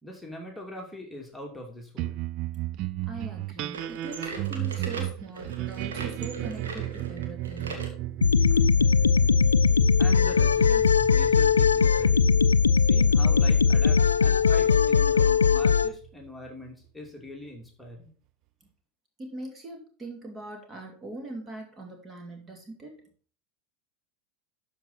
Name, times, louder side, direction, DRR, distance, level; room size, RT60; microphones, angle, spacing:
voice 1, 0.0-2.2 9.5-9.7 10.0-12.5 12.7-18.1, left 1 dB, 5° left, -1 dB, 2.5 m, -42 dB
sound 1, 2.0-16.7, right 15 dB, 50° right, 0.4 m, -35 dB
voice 2, 3.0-7.9 19.2-23.0, right 2 dB, 25° right, 2 dB, 2.7 m, -41 dB
sound 2, 3.7-8.0 8.5-8.6 9.3-9.4 10.3-10.4, right 4 dB, 75° right, 1.8 m, -39 dB
sound 3, 8.2-15.9, left 6 dB, 85° left, 0.3 m, -20 dB
12.0 x 5.0 x 4.2 m, 0.42 s
figure-of-eight pair, 85°, 0 cm